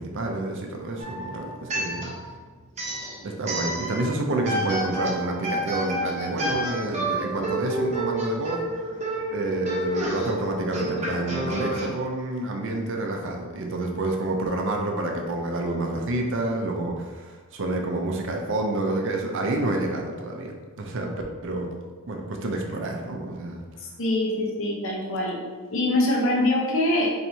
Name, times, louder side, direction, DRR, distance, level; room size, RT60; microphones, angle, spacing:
voice 1, 0.0-2.1 3.2-8.6 9.3-21.1 21.4-21.7 22.1-23.6, right 2 dB, 60° right, 2 dB, 0.5 m, -28 dB
sound 1, 1.0-2.3 2.7-4.1 4.5-11.9, right 1 dB, 35° right, 0.8 m, -29 dB
voice 2, 23.8-25.4 25.7-27.1, left 1 dB, 65° left, -2 dB, 0.8 m, -24 dB
4.5 x 3.2 x 2.7 m, 1.5 s
head